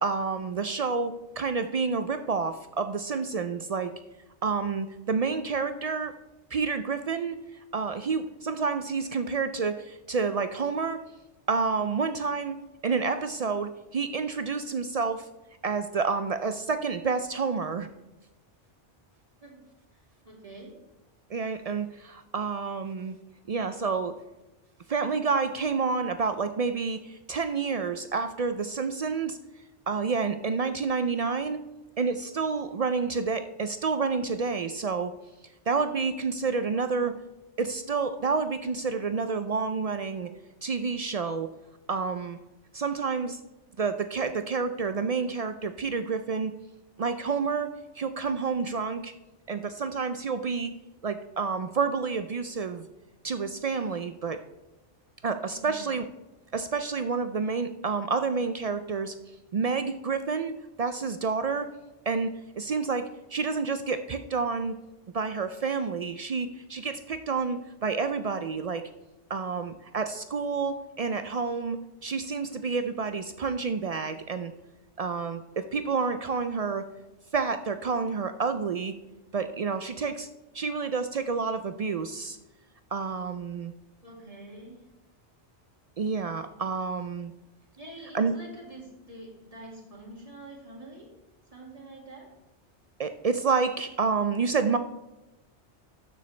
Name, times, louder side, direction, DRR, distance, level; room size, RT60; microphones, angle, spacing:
voice 1, 0.0-3.9 4.4-6.1 6.5-7.4 7.7-11.0 11.5-12.6 12.8-15.3 15.6-17.9 21.3-23.2 23.5-24.2 24.9-29.4 29.9-31.6 32.0-35.1 35.7-37.1 37.6-40.3 40.6-41.5 41.9-42.4 42.7-43.4 43.8-46.5 47.0-47.7 48.0-49.1 49.5-50.7 51.0-52.9 53.2-54.4 55.2-56.0 56.5-59.1 59.5-61.7 62.1-64.8 65.1-68.8 69.3-74.5 75.0-76.8 77.3-79.0 79.3-80.3 80.5-82.4 82.9-83.7 86.0-87.3 88.1-88.3 93.0-94.8, right 5 dB, 70° right, 9 dB, 0.3 m, -29 dB
voice 2, 19.4-20.8 36.7-37.1 55.5-56.0 84.0-84.9 87.8-91.1 91.5-92.3, right 1 dB, 30° right, -3 dB, 2.2 m, -46 dB
12.5 x 6.7 x 3.2 m, 1.0 s
omnidirectional pair, 1.2 m